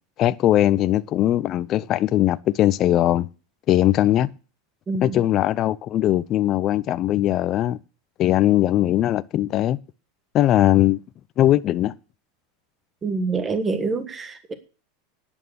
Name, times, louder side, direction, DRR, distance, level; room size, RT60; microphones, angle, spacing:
voice 1, 0.2-3.3 3.7-4.3 5.0-7.8 8.2-9.8 10.3-11.0 11.4-11.9, left 13 dB, 40° left, 0.6 m, -20 dB
voice 2, 4.9-5.2 13.0-14.5, right 3 dB, 20° right, 1.5 m, -26 dB
11.0 x 9.0 x 6.3 m
supercardioid pair, 120°, 0 cm